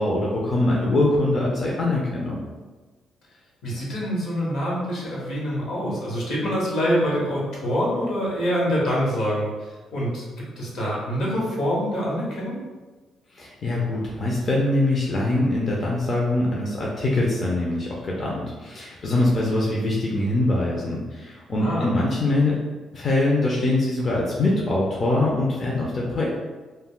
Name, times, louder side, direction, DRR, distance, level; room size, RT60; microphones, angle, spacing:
voice 1, 0.0-2.4 13.3-22.6 22.9-26.3, left 2 dB, 45° left, -4 dB, 0.5 m, -23 dB
voice 2, 3.6-10.2 10.6-12.6 21.6-21.9, equal, 75° left, -5 dB, 1.0 m, -25 dB
2.2 x 2.1 x 3.7 m, 1.3 s
cardioid pair, 90°, 0 cm